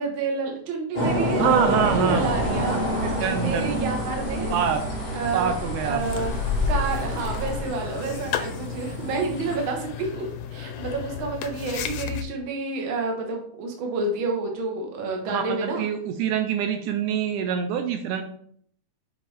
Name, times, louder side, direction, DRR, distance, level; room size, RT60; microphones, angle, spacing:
voice 1, 0.0-2.9 3.4-4.5 5.1-5.6 5.8-6.4 6.7-15.8, right 3 dB, 50° right, 2 dB, 1.6 m, -29 dB
sound 1, 0.9-9.6, equal, 55° left, 0.5 m, -29 dB
voice 2, 1.4-2.4 2.8-3.8 4.5-4.8 5.3-6.0 15.3-18.2, right 8 dB, 80° right, 6 dB, 2.1 m, -25 dB
Bird, 1.5-7.8, left 3 dB, 25° left, 1.3 m, -31 dB
sound 2, 6.0-12.2, left 8 dB, 85° left, 2.2 m, -34 dB
7.4 x 5.1 x 3.4 m, 0.62 s
omnidirectional pair, 3.7 m